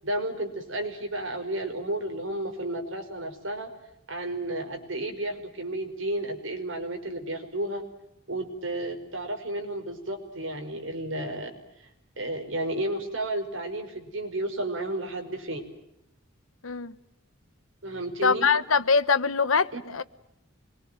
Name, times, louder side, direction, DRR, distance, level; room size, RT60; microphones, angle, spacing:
voice 1, 0.0-3.7 4.1-7.8 8.3-11.9 12.2-15.7 17.8-18.5 19.7-19.8, right 1 dB, 65° right, 5.2 m, -32 dB
voice 2, 16.6-16.9 18.2-20.0, left 5 dB, 90° left, 1.2 m, -23 dB
26.5 x 22.5 x 9.2 m
head